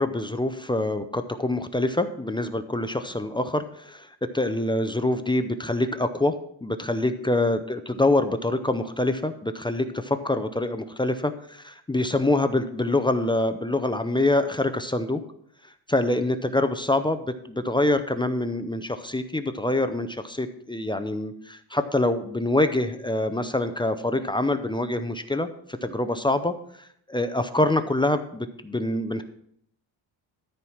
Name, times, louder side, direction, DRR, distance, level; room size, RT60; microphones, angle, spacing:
voice 1, 0.0-4.1 4.3-6.3 6.6-15.2 15.9-25.5 25.8-26.5 27.1-29.2, left 2 dB, 10° left, 9 dB, 0.5 m, -25 dB
13.5 x 4.7 x 5.7 m, 0.65 s
cardioid pair, 135°, 45 cm